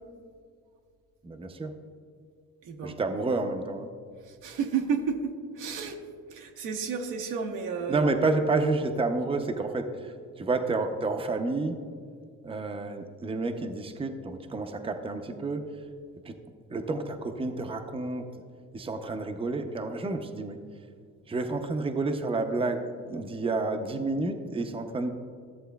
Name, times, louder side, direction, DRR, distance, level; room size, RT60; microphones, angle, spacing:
voice 1, 1.2-1.7 2.8-3.9 7.9-11.8 12.4-15.7 16.2-16.3 16.7-18.3 18.7-20.6 21.3-25.1, right 3 dB, 20° right, 6 dB, 0.6 m, -30 dB
voice 2, 2.6-3.0 4.2-6.0 6.3-8.1, right 6 dB, 85° right, 3 dB, 0.9 m, -32 dB
13.5 x 7.4 x 2.3 m, 2.1 s
cardioid pair, 90°, 30 cm